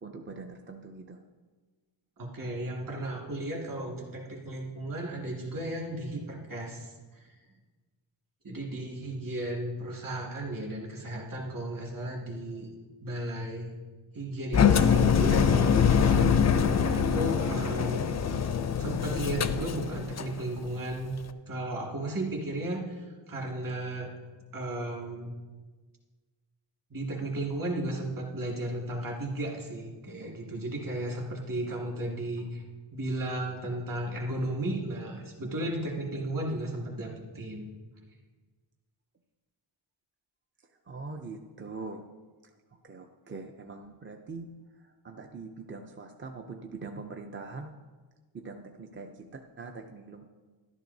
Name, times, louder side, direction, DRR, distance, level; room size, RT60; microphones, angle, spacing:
voice 1, 0.0-1.2 40.9-42.0 42.8-44.5 44.8-47.7 48.3-50.3, right 3 dB, 25° right, 3 dB, 0.4 m, -42 dB
voice 2, 2.2-7.3 8.4-12.7 13.0-13.7 14.1-18.1 18.8-21.1 21.5-24.1 24.5-25.3 26.9-32.6 32.9-37.7, right 1 dB, 40° right, -2 dB, 2.0 m, -35 dB
Engine, 14.5-20.4, left 7 dB, 35° left, 0.4 m, -24 dB
13.5 x 11.0 x 2.7 m, 1.4 s
wide cardioid pair, 165°, 49 cm